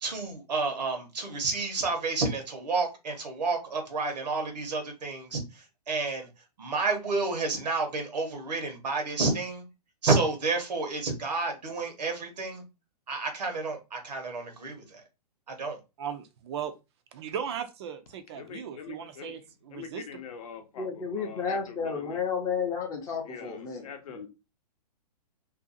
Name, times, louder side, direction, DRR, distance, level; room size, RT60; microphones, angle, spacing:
voice 1, 0.0-5.4 5.9-6.3 6.6-9.7 10.0-12.6 13.1-15.0 15.6-15.8, right 3 dB, 85° right, 1.0 m, -30 dB
voice 2, 16.0-16.7 17.1-20.0, right 8 dB, 40° right, 0.4 m, -37 dB
voice 3, 18.4-19.4 19.7-22.2 23.2-24.3, left 7 dB, 60° left, 0.6 m, -44 dB
voice 4, 20.8-24.3, left 5 dB, 15° left, 0.5 m, -32 dB
2.5 x 2.3 x 2.5 m
hypercardioid pair, 140°, 21 cm